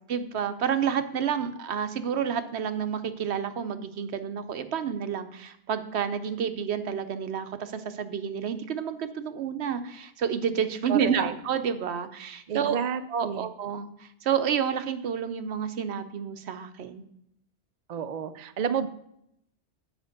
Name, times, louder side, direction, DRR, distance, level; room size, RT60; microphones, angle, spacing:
voice 1, 0.1-12.8 13.1-17.0, right 7 dB, 70° right, 10 dB, 1.0 m, -29 dB
voice 2, 10.9-11.3 12.5-13.5 17.9-18.9, right 7 dB, 55° right, 11 dB, 0.5 m, -30 dB
7.8 x 5.1 x 6.4 m, 0.74 s
omnidirectional pair, 1.2 m